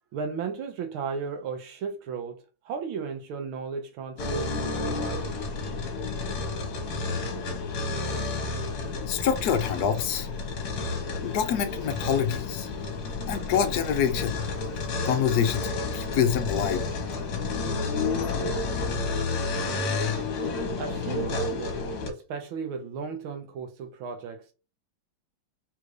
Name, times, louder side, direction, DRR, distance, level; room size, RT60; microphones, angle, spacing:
voice 1, 0.1-4.6 4.8-5.3 13.0-13.1 20.8-24.5, right 5 dB, 85° right, 1.7 m, -35 dB
sound 1, 4.2-22.1, left 3 dB, 55° left, 1.4 m, -30 dB
voice 2, 9.1-10.3 11.2-12.7 13.3-14.4 15.1-15.7 15.9-16.8, left 8 dB, 70° left, 0.9 m, -26 dB
4.2 x 2.5 x 4.7 m
omnidirectional pair, 2.2 m